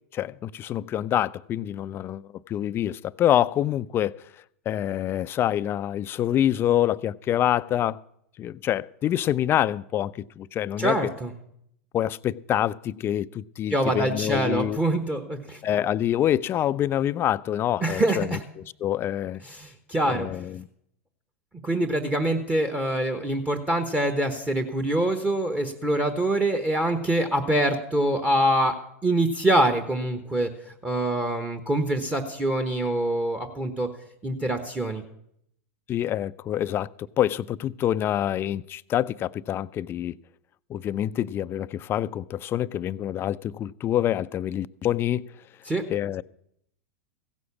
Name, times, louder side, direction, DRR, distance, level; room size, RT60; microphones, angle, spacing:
voice 1, 0.1-4.2 4.7-8.0 8.4-11.0 11.9-14.8 15.6-18.4 18.8-19.4 20.1-20.7 35.9-36.9 37.2-40.2 40.7-45.3 45.9-46.2, left 11 dB, 30° left, 0.4 m, -26 dB
voice 2, 10.8-11.3 13.7-15.6 17.8-18.4 19.4-20.3 21.6-33.9 34.2-35.0 45.7-45.8, right 1 dB, 15° right, 1.1 m, -25 dB
16.0 x 6.3 x 7.1 m
hypercardioid pair, 105°, 8 cm